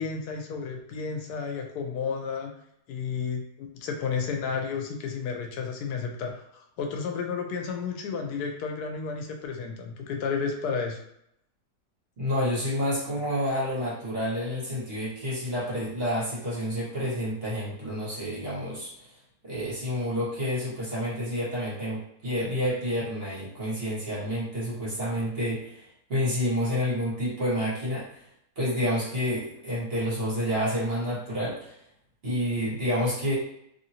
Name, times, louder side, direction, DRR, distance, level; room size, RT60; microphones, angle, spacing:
voice 1, 0.0-2.5 2.9-11.0, left 5 dB, 85° left, 3 dB, 1.1 m, -32 dB
voice 2, 12.2-18.9 19.4-28.2 28.6-31.7 32.2-33.4, equal, 40° right, -8 dB, 1.5 m, -29 dB
2.9 x 2.7 x 2.8 m, 0.75 s
omnidirectional pair, 1.6 m